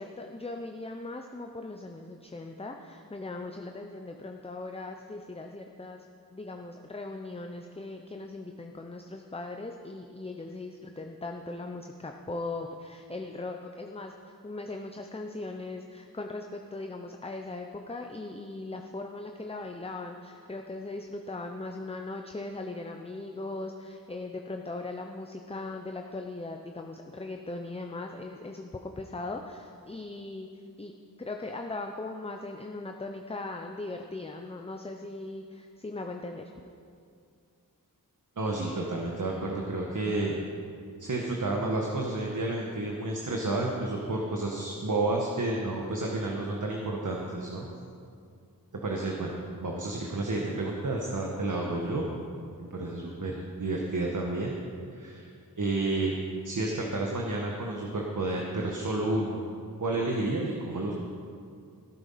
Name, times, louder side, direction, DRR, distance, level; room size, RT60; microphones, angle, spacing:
voice 1, 0.0-30.9 31.2-36.6, left 2 dB, 15° left, 4 dB, 0.7 m, -39 dB
voice 2, 38.4-40.3 41.0-47.6 48.8-49.3 49.6-52.1 52.6-54.5 54.9-55.3 55.6-56.1 56.4-59.4 59.8-60.9, right 2 dB, 55° right, -1 dB, 1.5 m, -30 dB
15.5 x 9.0 x 5.7 m, 2.3 s
wide cardioid pair, 80°, 37 cm